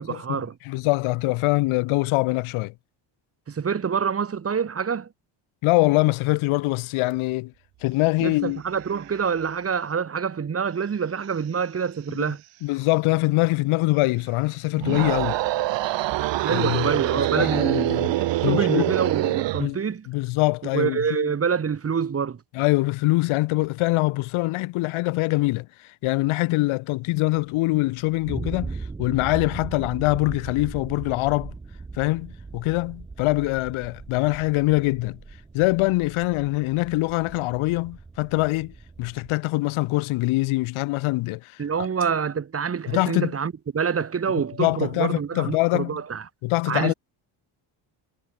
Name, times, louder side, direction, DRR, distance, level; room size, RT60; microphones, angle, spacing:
voice 1, 0.0-0.6 3.5-5.1 8.2-12.4 16.4-20.1 20.7-22.4 41.6-46.2 46.7-46.9, right 6 dB, 30° right, 1.1 m, -26 dB
voice 2, 0.7-2.7 5.6-7.5 7.8-8.6 12.1-12.2 12.6-15.4 16.5-16.9 17.4-18.1 18.4-19.0 19.6-19.8 20.1-21.3 22.5-25.7 26.0-31.5 32.0-35.2 35.5-41.5 41.8-41.9 42.9-43.3 44.6-46.0 46.4-46.9, left 21 dB, 80° left, 0.8 m, -23 dB
sound 1, 7.1-7.2 7.5-9.9 10.7-13.0 13.9-15.4 16.2-17.3, right 18 dB, 90° right, 6.5 m, -50 dB
sound 2, 14.8-19.7, right 16 dB, 65° right, 0.8 m, -25 dB
sound 3, 27.1-39.3, right 4 dB, 10° right, 0.4 m, -39 dB
cardioid pair, 85°, 48 cm